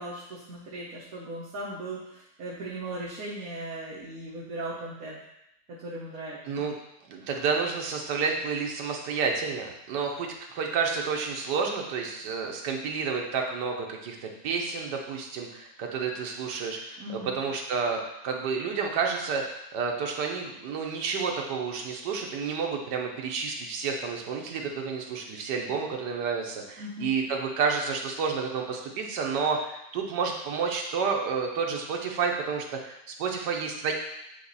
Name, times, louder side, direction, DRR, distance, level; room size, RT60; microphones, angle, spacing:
voice 1, 0.0-5.2 5.8-6.4 17.0-17.3 26.8-27.1, right 1 dB, 60° right, -6 dB, 1.3 m, -38 dB
voice 2, 7.1-33.9, right 5 dB, 75° right, 1 dB, 1.5 m, -30 dB
8.3 x 3.0 x 4.0 m, 0.83 s
omnidirectional pair, 1.8 m